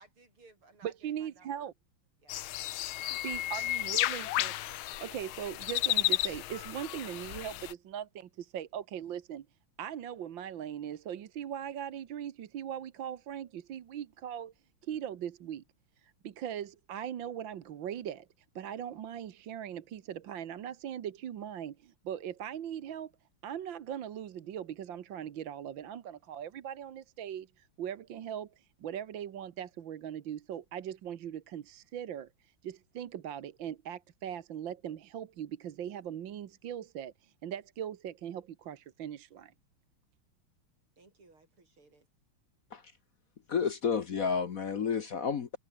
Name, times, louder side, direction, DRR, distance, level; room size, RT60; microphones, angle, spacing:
voice 1, 0.0-1.7 2.2-3.0 3.5-5.0 41.0-42.1, right 3 dB, 85° right, 6.8 m, -61 dB
voice 2, 0.8-1.7 3.2-4.5 5.0-9.5 9.8-14.5 14.8-15.6 16.0-18.3 18.6-23.1 23.4-39.5, right 9 dB, 65° right, 1.8 m, -40 dB
sound 1, 2.3-7.7, left 15 dB, 80° left, 1.6 m, -33 dB
voice 3, 43.5-45.6, left 6 dB, 50° left, 1.3 m, -31 dB
omnidirectional pair, 2.3 m